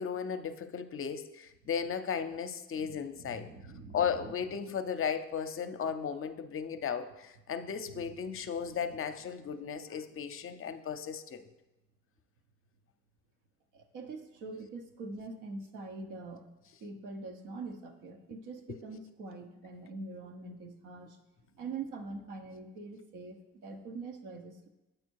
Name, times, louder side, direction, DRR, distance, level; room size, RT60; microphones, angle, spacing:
voice 1, 0.0-3.5 3.9-11.4 18.7-18.8, left 7 dB, 45° left, 10 dB, 0.5 m, -35 dB
voice 2, 2.7-4.6 7.9-8.0 8.3-8.8 13.7-16.5 16.8-21.2 21.5-24.7, right 3 dB, 90° right, 5 dB, 0.9 m, -44 dB
7.8 x 4.3 x 4.6 m, 1.0 s
cardioid pair, 90°, 30 cm